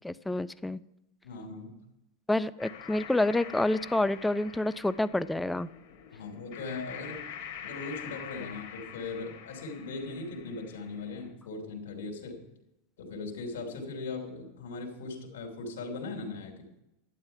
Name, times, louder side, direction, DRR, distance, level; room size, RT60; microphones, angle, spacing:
voice 1, 0.0-0.8 2.3-5.7, left 2 dB, 5° left, 17 dB, 0.5 m, -28 dB
voice 2, 1.2-1.7 6.1-7.2 7.6-12.5 13.0-16.7, left 3 dB, 80° left, 1 dB, 3.1 m, -39 dB
sound 1, 2.6-11.3, left 8 dB, 55° left, 2.6 m, -45 dB
11.5 x 9.9 x 5.6 m, 0.88 s
hypercardioid pair, 105°, 0 cm